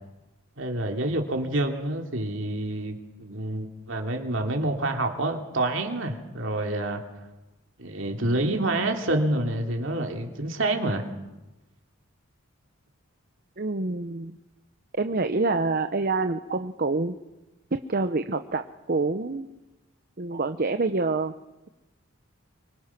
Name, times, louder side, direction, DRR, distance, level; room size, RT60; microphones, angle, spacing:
voice 1, 0.6-7.0 7.8-11.1, right 1 dB, 60° right, 3 dB, 2.8 m, -27 dB
voice 2, 13.6-14.3 15.0-17.2 17.9-19.5 20.2-21.3, right 3 dB, 45° right, 8 dB, 0.8 m, -26 dB
25.5 x 24.0 x 6.0 m, 1.0 s
head